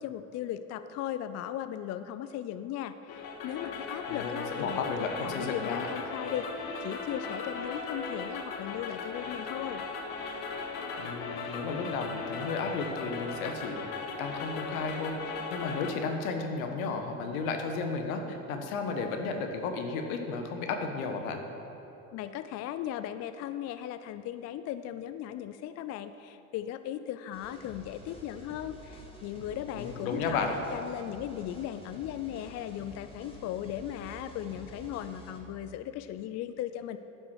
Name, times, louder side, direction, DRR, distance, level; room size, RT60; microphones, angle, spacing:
voice 1, 0.0-9.8 22.1-37.0, left 11 dB, 40° left, 11 dB, 0.4 m, -37 dB
sound 1, 3.1-15.9, left 4 dB, 60° left, 1.4 m, -37 dB
voice 2, 4.1-5.9 11.0-13.8 14.2-21.4 29.7-30.5, left 4 dB, 75° left, 5 dB, 1.2 m, -33 dB
sound 2, 27.3-35.4, equal, 10° left, 2.3 m, -49 dB
10.5 x 5.8 x 6.4 m, 3.0 s
hypercardioid pair, 75°, 42 cm